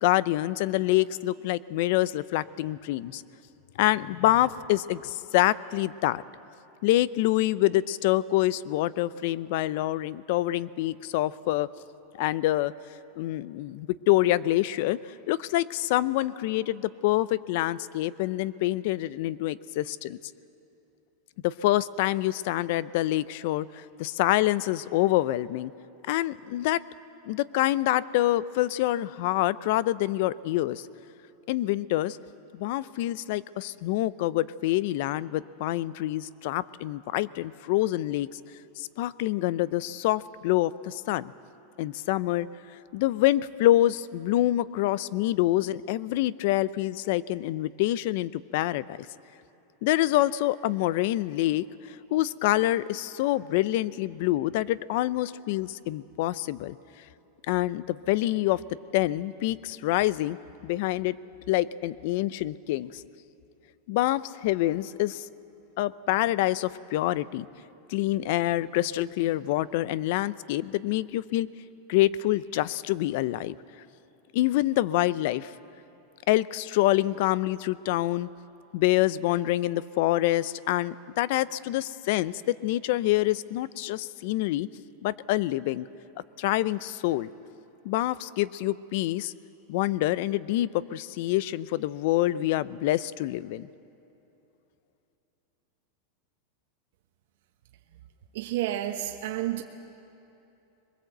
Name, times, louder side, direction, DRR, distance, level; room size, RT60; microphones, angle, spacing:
voice 1, 0.0-3.2 3.8-6.2 6.8-11.7 12.2-12.7 13.2-15.0 15.3-20.2 21.4-25.7 26.1-26.8 27.2-30.9 31.5-32.2 32.5-38.3 38.8-41.3 41.8-42.5 42.9-49.1 49.8-56.8 57.5-58.6 58.9-60.4 60.6-61.2 61.5-63.0 63.9-65.2 65.8-67.5 67.9-71.5 71.9-73.5 74.3-75.5 76.3-78.3 78.7-84.7 85.0-85.9 86.4-87.3 87.8-89.3 89.7-93.7, left 15 dB, 60° left, 19 dB, 0.5 m, -26 dB
voice 2, 98.3-99.6, right 13 dB, 70° right, 3 dB, 1.1 m, -30 dB
23.0 x 21.0 x 7.9 m, 3.0 s
supercardioid pair, 150°, 0 cm